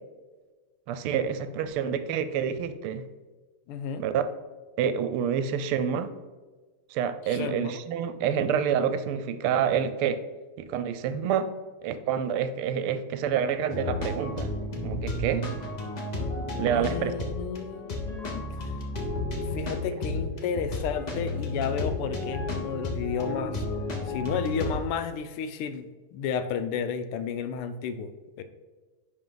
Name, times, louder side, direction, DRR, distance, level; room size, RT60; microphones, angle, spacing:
voice 1, 0.9-3.0 4.0-4.2 4.8-6.1 6.9-10.2 10.6-11.5 11.8-14.5 14.8-15.5 16.6-17.1, right 8 dB, 80° right, 11 dB, 1.4 m, -27 dB
voice 2, 3.7-4.0 7.3-7.8 16.5-18.4 19.4-23.6 24.0-28.1 28.4-28.5, left 6 dB, 85° left, 10 dB, 1.5 m, -32 dB
sound 1, 13.7-24.8, left 2 dB, 70° left, 0.4 m, -32 dB
10.5 x 3.8 x 3.8 m, 1.3 s
omnidirectional pair, 2.4 m